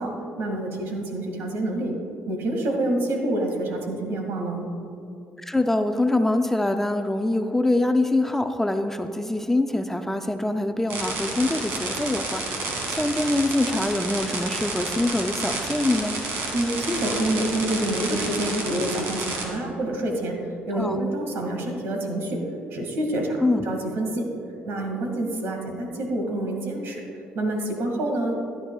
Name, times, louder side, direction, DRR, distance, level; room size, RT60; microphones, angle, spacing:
voice 1, 0.0-1.9 2.3-4.7 16.5-22.4 22.7-23.4 23.6-24.2 24.6-27.0 27.3-28.3, right 1 dB, 70° right, 2 dB, 2.1 m, -27 dB
voice 2, 5.4-16.1 20.7-21.0 23.4-23.7, left 2 dB, 10° left, 7 dB, 0.5 m, -24 dB
sound 1, 10.9-19.4, right 3 dB, 85° right, 2.3 m, -30 dB
15.5 x 11.5 x 2.4 m, 2.7 s
cardioid pair, 95°, 4 cm